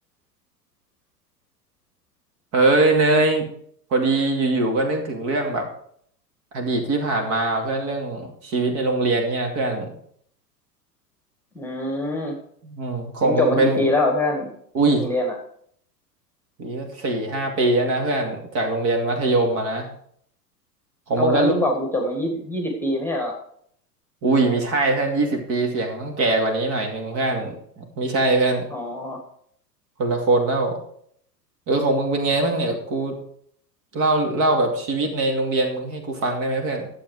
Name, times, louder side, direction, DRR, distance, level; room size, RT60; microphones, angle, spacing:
voice 1, 2.5-3.4 3.9-5.7 6.5-9.9 12.6-13.8 14.7-15.1 16.6-19.9 21.1-21.5 24.2-28.7 30.0-30.8 31.7-33.1 33.9-36.9, right 2 dB, 35° right, 3 dB, 2.5 m, -22 dB
voice 2, 11.6-12.3 13.2-14.5 14.9-15.3 21.2-23.3 28.7-29.2, left 2 dB, 5° left, 1 dB, 1.8 m, -24 dB
11.5 x 7.6 x 4.8 m, 0.65 s
figure-of-eight pair, 95°, 49 cm